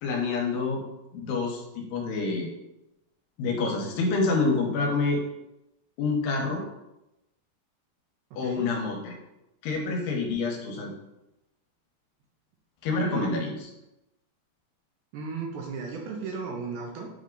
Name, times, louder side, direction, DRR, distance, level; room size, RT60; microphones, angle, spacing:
voice 1, 0.0-0.8 1.2-2.5 3.4-5.2 6.0-6.6 8.4-9.1 9.6-10.9 12.8-13.6, left 3 dB, 75° left, 1 dB, 2.9 m, -27 dB
voice 2, 8.3-8.7 12.9-13.4 15.1-17.1, right 5 dB, 75° right, 0 dB, 2.4 m, -35 dB
8.6 x 3.6 x 3.8 m, 0.90 s
omnidirectional pair, 4.9 m